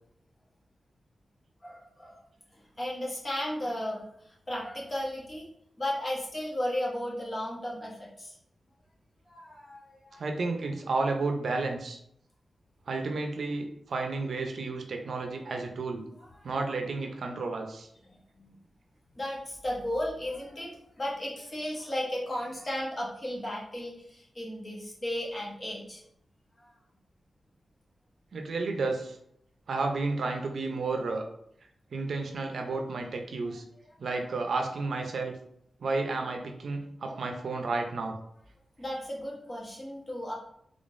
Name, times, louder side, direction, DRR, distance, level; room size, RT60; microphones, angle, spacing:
voice 1, 1.6-2.2 2.8-5.5 5.8-8.4 9.3-10.2 16.4-16.5 18.1-18.5 19.1-26.0 26.6-26.7 38.8-40.3, left 1 dB, 25° left, -4 dB, 1.0 m, -35 dB
voice 2, 10.2-12.0 12.9-16.0 16.4-17.9 28.3-29.2 29.7-31.2 31.9-33.6 34.0-35.3 35.8-38.2, right 3 dB, 70° right, 3 dB, 0.5 m, -32 dB
3.6 x 3.4 x 2.5 m, 0.71 s
wide cardioid pair, 145°, 0 cm